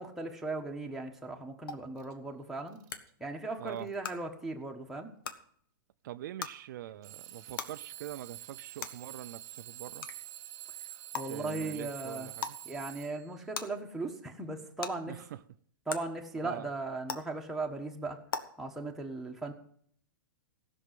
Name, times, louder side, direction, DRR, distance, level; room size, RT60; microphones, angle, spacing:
voice 1, 0.0-2.8 3.2-5.1 11.1-12.3 12.6-15.1 15.9-18.2 18.6-19.5, right 2 dB, 5° right, 1.4 m, -38 dB
sound 1, 1.7-1.8 2.9-3.0 4.0-4.1 5.2-5.3 6.4-6.5 7.6-7.7 8.8-8.9 10.0-10.1 11.1-11.2 12.4-12.6 13.5-13.6 14.8-14.9 15.9-16.0 17.1-17.2 18.3-18.4, left 6 dB, 80° left, 1.4 m, -35 dB
Alarm / Clock, 2.0-2.1 2.7-3.1 3.7-4.1 5.0-5.1 7.0-13.4, right 15 dB, 35° right, 0.9 m, -47 dB
voice 2, 6.0-10.1 11.3-12.6 15.1-15.4 16.4-16.7, right 13 dB, 60° right, 0.5 m, -43 dB
15.5 x 6.3 x 7.5 m
hypercardioid pair, 150°, 11 cm